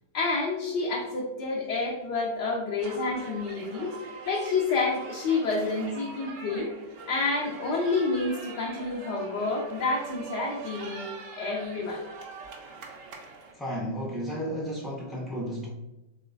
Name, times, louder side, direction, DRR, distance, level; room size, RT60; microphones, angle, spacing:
voice 1, 0.1-3.9 4.3-6.7 7.1-12.0, left 3 dB, 55° left, -3 dB, 0.5 m, -29 dB
sound 1, 2.8-13.5, right 4 dB, 50° right, 0.5 m, -43 dB
voice 2, 13.5-15.7, equal, 10° left, -4 dB, 0.6 m, -33 dB
3.1 x 2.1 x 2.4 m, 1.0 s
hypercardioid pair, 105°, 0 cm